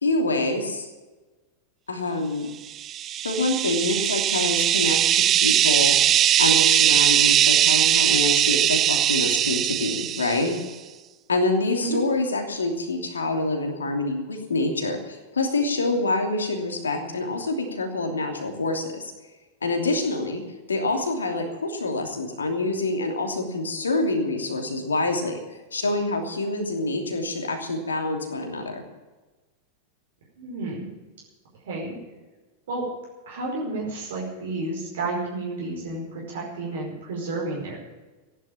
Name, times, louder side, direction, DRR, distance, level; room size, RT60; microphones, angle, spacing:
voice 1, 0.0-0.9 1.9-2.5 3.2-6.0 6.4-10.6 11.3-19.1 19.6-20.4 20.7-25.4 25.7-28.8, left 2 dB, 75° left, 4 dB, 2.9 m, -26 dB
sound 1, 2.8-10.6, right 11 dB, 30° right, 0.5 m, -20 dB
voice 2, 30.4-30.9 31.6-32.0 32.7-32.9 33.2-37.8, right 2 dB, 60° right, -3 dB, 5.1 m, -31 dB
15.5 x 11.0 x 7.3 m, 1.2 s
figure-of-eight pair, 90°, 0 cm